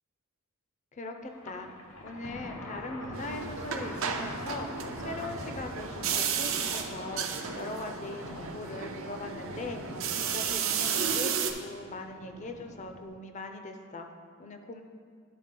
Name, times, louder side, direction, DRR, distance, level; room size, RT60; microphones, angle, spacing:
voice 1, 0.9-1.7 2.0-4.7 5.0-7.3 7.5-14.1 14.4-14.8, left 2 dB, 35° left, 5 dB, 0.5 m, -40 dB
Thunder, 1.3-13.1, left 1 dB, 90° left, 0.8 m, -44 dB
sound 1, 3.1-11.5, right 7 dB, 65° right, 0.5 m, -33 dB
11.0 x 4.0 x 3.7 m, 2.1 s
head